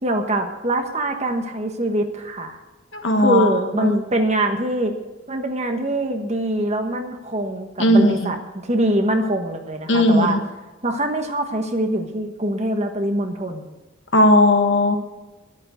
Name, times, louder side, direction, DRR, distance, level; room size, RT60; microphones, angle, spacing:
voice 1, 0.0-2.6 3.2-4.9 5.3-8.4 8.6-10.4 10.8-13.7, right 1 dB, 35° right, 5 dB, 1.4 m, -23 dB
voice 2, 2.9-3.5 3.8-3.9 7.8-8.3 9.9-10.4 14.1-15.0, left 1 dB, 65° left, 5 dB, 1.5 m, -16 dB
11.5 x 8.8 x 8.1 m, 1.1 s
head